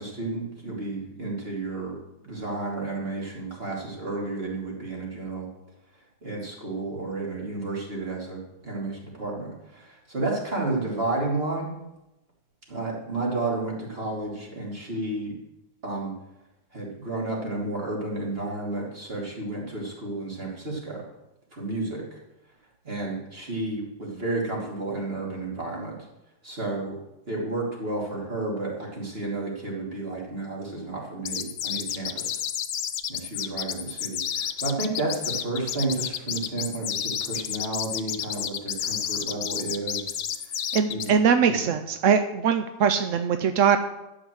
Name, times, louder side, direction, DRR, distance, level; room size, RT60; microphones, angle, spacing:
voice 1, 0.0-5.5 6.2-11.7 12.7-15.4 15.8-16.1 16.7-21.0 21.5-22.2 22.8-25.9 26.4-26.9 27.3-32.4 33.1-40.2 40.4-40.6 40.9-41.1 41.4-41.7, right 2 dB, 35° right, -3 dB, 3.2 m, -31 dB
sound 1, 31.2-41.1, left 9 dB, 75° left, 1.4 m, -30 dB
voice 2, 40.7-43.8, right 7 dB, 65° right, 8 dB, 0.8 m, -22 dB
11.5 x 6.4 x 7.8 m, 0.94 s
omnidirectional pair, 1.9 m